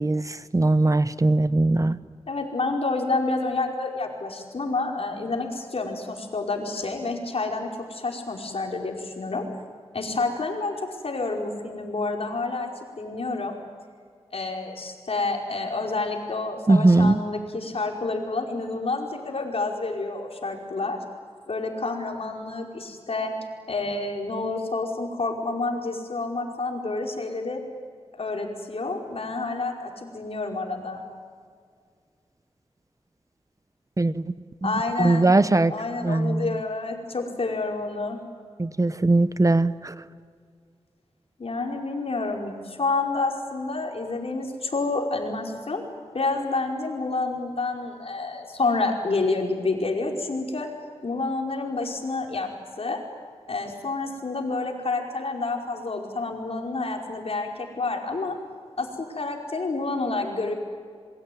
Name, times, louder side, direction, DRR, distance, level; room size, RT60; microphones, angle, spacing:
voice 1, 0.0-2.0 16.7-17.2 34.0-34.3 34.6-34.7 35.0-35.7 36.0-36.6 38.6-40.0, right 2 dB, 30° right, 14 dB, 0.9 m, -20 dB
voice 2, 2.3-9.4 9.9-10.7 11.0-12.7 13.0-13.6 14.3-21.0 21.5-23.3 23.7-27.6 28.1-31.0 34.6-35.3 35.7-38.2 41.4-45.8 46.1-50.7 51.0-52.5 52.8-53.0 53.5-58.4 58.8-60.5, left 3 dB, 65° left, 1 dB, 5.1 m, -29 dB
26.5 x 22.5 x 9.4 m, 2.1 s
wide cardioid pair, 65°, 11 cm